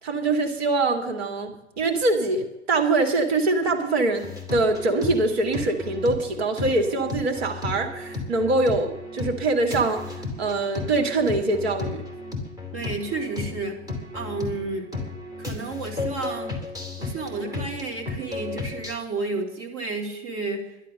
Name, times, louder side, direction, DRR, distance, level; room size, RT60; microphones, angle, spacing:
voice 1, 0.0-12.0, right 2 dB, 60° right, 4 dB, 2.4 m, -24 dB
sound 1, 4.2-18.9, left 3 dB, 10° right, 3.4 m, -34 dB
voice 2, 12.7-13.8 14.1-14.8 15.4-16.5 17.0-20.7, right 3 dB, 40° right, 1 dB, 3.9 m, -31 dB
12.0 x 11.5 x 6.7 m, 0.93 s
hypercardioid pair, 100°, 35 cm